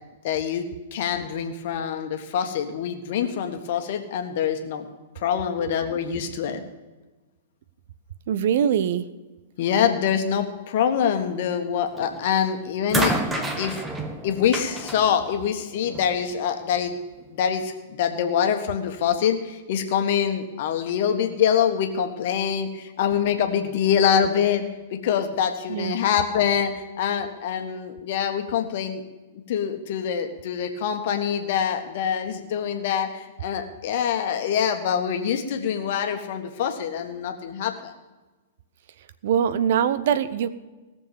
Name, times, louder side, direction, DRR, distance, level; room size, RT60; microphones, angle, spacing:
voice 1, 0.2-0.7 0.9-4.8 5.2-6.6 9.6-13.1 13.6-13.8 14.2-17.0 17.3-24.6 24.9-29.0 29.5-37.9, left 8 dB, 50° left, 6 dB, 1.5 m, -25 dB
voice 2, 8.3-9.1 25.7-26.0 39.2-40.5, right 8 dB, 55° right, 14 dB, 0.7 m, -22 dB
sound 1, 12.0-12.3 12.9-16.2 17.2-17.3, right 2 dB, 10° right, 1.4 m, -29 dB
17.5 x 7.1 x 6.9 m, 1.2 s
figure-of-eight pair, 105°, 0 cm